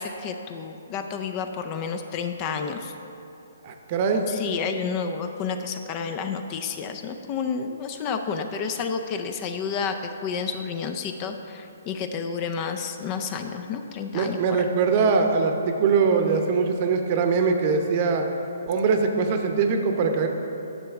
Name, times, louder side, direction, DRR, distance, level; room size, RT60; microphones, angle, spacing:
voice 1, 0.0-2.9 4.3-14.4, left 6 dB, 30° left, 7 dB, 0.5 m, -30 dB
voice 2, 3.6-4.2 14.1-18.3 18.7-20.3, right 5 dB, 40° right, 5 dB, 0.8 m, -22 dB
9.8 x 6.8 x 3.6 m, 2.8 s
hypercardioid pair, 145°, 0 cm